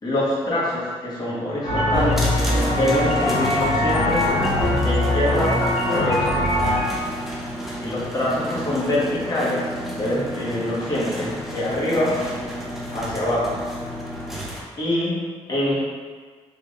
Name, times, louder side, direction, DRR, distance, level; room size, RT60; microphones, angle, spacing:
voice 1, 0.0-2.3 2.7-4.3 4.8-6.4 7.8-12.2 12.9-13.6 14.8-15.8, left 1 dB, 30° left, -8 dB, 1.3 m, -25 dB
sound 1, 1.6-6.8, left 1 dB, 65° left, 1.3 m, -21 dB
sound 2, 2.1-14.6, equal, ahead, 0.6 m, -32 dB
3.3 x 3.1 x 2.5 m, 1.5 s
cardioid pair, 105°, 12 cm